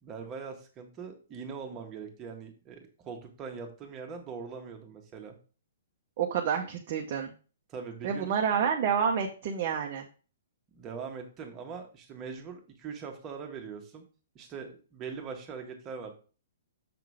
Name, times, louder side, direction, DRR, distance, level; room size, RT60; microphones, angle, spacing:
voice 1, 0.0-5.4 7.7-8.3 10.7-14.0 14.3-16.1, right 5 dB, 25° right, 3 dB, 1.6 m, -41 dB
voice 2, 6.2-7.3 8.0-10.0, right 7 dB, 45° right, 1 dB, 0.9 m, -28 dB
6.9 x 3.8 x 4.8 m, 0.37 s
hypercardioid pair, 130°, 0 cm